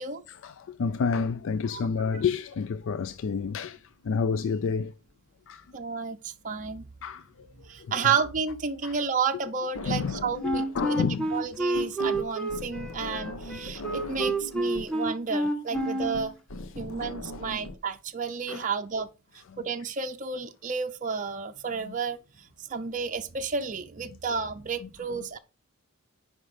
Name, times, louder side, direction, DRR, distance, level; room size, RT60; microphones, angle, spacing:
voice 1, 0.3-4.9 5.5-5.7 7.0-7.3 7.8-7.9 8.8-9.0 9.9-10.2 10.4-11.3 16.8-16.9 18.5-18.6 21.9-22.0, left 5 dB, 60° left, 0.4 m, -29 dB
voice 2, 5.7-6.9 7.7-16.3 16.8-19.1 19.6-25.4, right 5 dB, 35° right, 0.6 m, -31 dB
sound 1, 9.8-11.0 11.3-17.8, left 2 dB, 85° left, 1.1 m, -39 dB
Wind instrument woodwind instrument, 10.4-16.3, right 2 dB, 5° left, 1.3 m, -29 dB
8.6 x 5.2 x 4.8 m
head